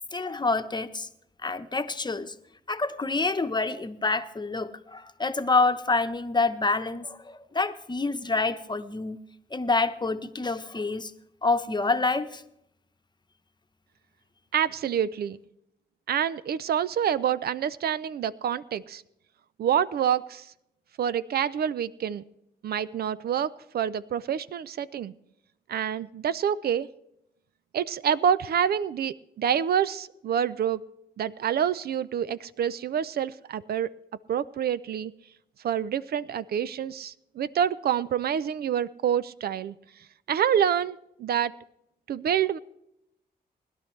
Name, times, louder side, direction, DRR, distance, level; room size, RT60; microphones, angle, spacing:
voice 1, 0.1-1.1 1.4-2.3 2.7-9.2 9.5-11.1 11.4-12.4, left 3 dB, 25° left, 9 dB, 1.0 m, -27 dB
voice 2, 14.5-15.4 16.1-19.0 19.6-20.5 21.0-22.2 22.6-25.1 25.7-26.9 27.7-30.8 31.2-33.9 34.3-35.1 35.6-39.7 40.3-41.5 42.1-42.6, right 9 dB, 70° right, 16 dB, 0.5 m, -27 dB
20.5 x 11.0 x 3.2 m, 0.80 s
cardioid pair, 60°, 17 cm